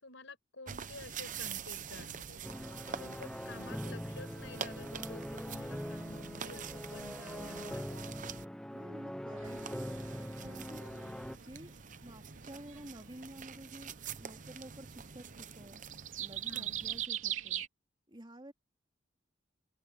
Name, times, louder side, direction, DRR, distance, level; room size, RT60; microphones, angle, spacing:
voice 1, 0.0-2.4 2.9-8.4 16.5-16.7, left 2 dB, 75° left, 5.3 m, -51 dB
sound 1, 0.7-8.4 9.4-17.1, right 7 dB, 40° right, 0.8 m, -46 dB
sound 2, 2.4-11.4, equal, 5° left, 0.6 m, -42 dB
voice 2, 8.7-10.8 11.4-11.7 12.0-15.8 16.2-17.6 18.1-18.5, right 1 dB, 25° right, 3.2 m, -51 dB
sound 3, 9.4-17.7, right 11 dB, 90° right, 2.7 m, -43 dB
open air
head